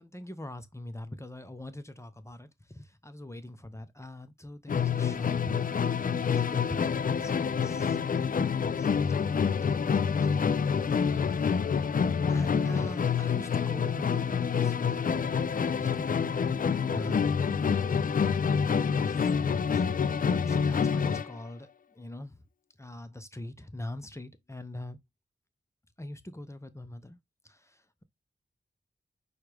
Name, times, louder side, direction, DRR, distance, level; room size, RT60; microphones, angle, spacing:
voice 1, 0.0-5.6 6.1-8.9 9.3-9.4 12.3-18.2 18.6-19.3 19.7-19.8 20.3-22.4 22.8-25.0 26.0-27.2 27.4-28.0, left 1 dB, 15° left, 0.7 m, -43 dB
Musical instrument, 4.7-21.4, left 6 dB, 45° left, 0.4 m, -27 dB
5.8 x 2.4 x 3.3 m
cardioid pair, 45°, 19 cm